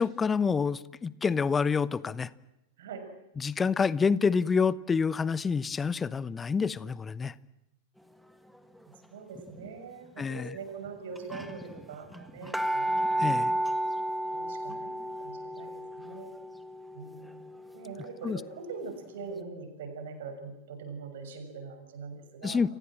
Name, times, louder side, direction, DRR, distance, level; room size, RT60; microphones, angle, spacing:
voice 1, 0.0-2.3 3.4-7.3 10.2-10.5 13.2-13.5 18.2-18.4 22.4-22.7, left 5 dB, 15° left, 19 dB, 1.0 m, -27 dB
voice 2, 2.8-3.1 9.1-13.5 14.3-16.3 16.9-22.6, right 4 dB, 60° right, 8 dB, 6.6 m, -43 dB
sound 1, 9.4-9.7 10.5-10.6 10.9-11.0 11.2-18.8 19.2-19.3, right 1 dB, ahead, 1.8 m, -33 dB
29.5 x 24.5 x 7.5 m, 0.88 s
figure-of-eight pair, 90°, 0 cm